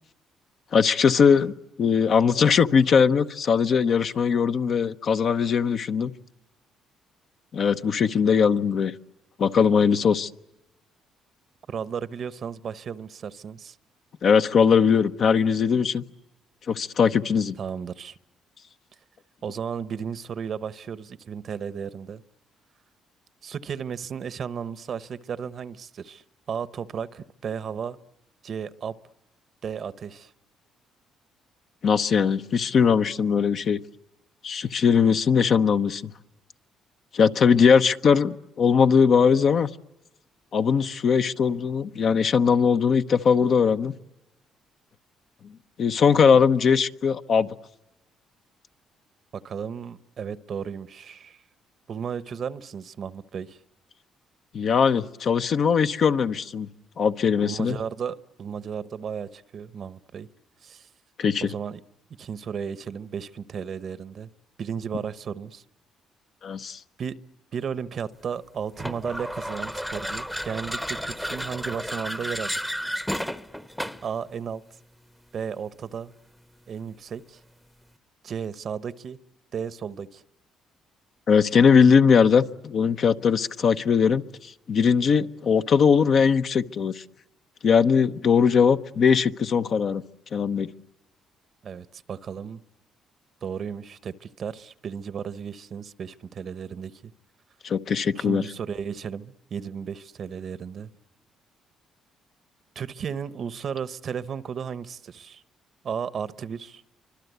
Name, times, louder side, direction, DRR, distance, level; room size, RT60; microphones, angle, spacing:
voice 1, 0.7-1.5 1.8-6.1 7.5-8.9 9.4-10.3 14.2-16.0 16.7-17.5 31.8-33.8 34.4-36.1 37.1-39.7 40.5-43.9 45.8-47.5 54.5-56.7 57.0-57.8 61.2-61.5 66.4-66.8 81.3-87.0 87.6-90.0 90.3-90.7 97.6-98.4, left 6 dB, 55° left, 9 dB, 0.9 m, -20 dB
voice 2, 11.7-13.8 17.6-18.2 19.4-22.2 23.4-26.2 26.5-28.0 28.4-29.0 29.6-30.3 49.4-51.4 51.9-53.6 57.4-60.3 60.6-60.9 61.4-61.8 62.2-64.3 64.6-65.6 67.0-67.2 67.5-72.6 74.0-74.6 75.3-76.1 76.7-77.4 78.2-79.2 79.5-80.2 91.6-92.6 93.4-97.1 98.1-100.9 102.7-105.4 105.8-106.8, right 7 dB, 50° right, 16 dB, 0.9 m, -34 dB
sound 1, 68.8-74.2, equal, 5° left, 0.9 m, -32 dB
28.5 x 25.0 x 8.1 m, 0.95 s
cardioid pair, 100°, 0 cm